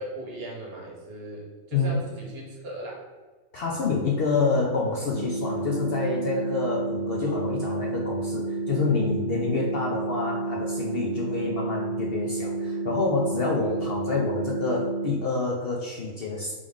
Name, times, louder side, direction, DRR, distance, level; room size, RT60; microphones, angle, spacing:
voice 1, 0.0-3.1 7.1-7.2 13.6-13.7 14.0-14.2, right 1 dB, 50° right, -2 dB, 0.9 m, -38 dB
voice 2, 3.5-16.5, left 4 dB, 60° left, -2 dB, 0.6 m, -27 dB
sound 1, 5.1-15.1, right 3 dB, 30° left, 1.1 m, -30 dB
3.6 x 3.4 x 3.4 m, 1.4 s
omnidirectional pair, 1.5 m